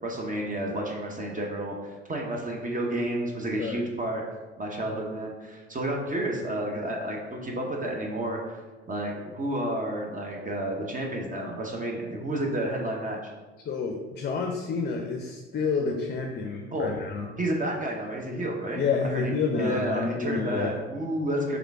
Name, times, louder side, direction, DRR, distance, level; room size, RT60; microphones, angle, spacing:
voice 1, 0.0-4.2 4.6-8.4 8.9-13.2 16.7-16.9 17.4-21.6, right 1 dB, 25° right, 0 dB, 0.8 m, -31 dB
voice 2, 13.6-17.3 18.7-20.7, left 5 dB, 30° left, 2 dB, 0.6 m, -29 dB
3.6 x 3.5 x 3.5 m, 1.2 s
hypercardioid pair, 70°, 33 cm